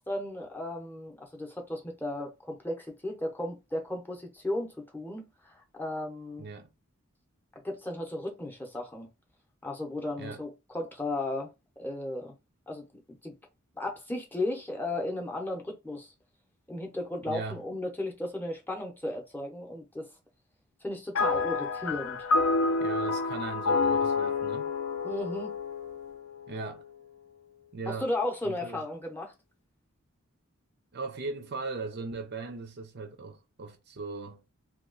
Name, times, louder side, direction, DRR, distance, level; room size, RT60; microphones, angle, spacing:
voice 1, 0.1-6.5 7.6-9.1 9.6-11.5 11.8-12.3 12.7-12.8 13.2-13.3 13.7-16.1 16.7-20.1 20.8-22.2 25.0-25.6 27.9-29.3, left 1 dB, 10° left, 0.7 m, -35 dB
voice 2, 6.4-6.7 10.2-10.4 17.3-17.6 22.8-24.7 26.5-26.8 27.7-28.1 28.4-28.8 30.9-34.4, right 3 dB, 50° right, 0.5 m, -38 dB
sound 1, 21.1-26.7, left 3 dB, 70° left, 0.5 m, -28 dB
2.9 x 2.3 x 3.8 m
head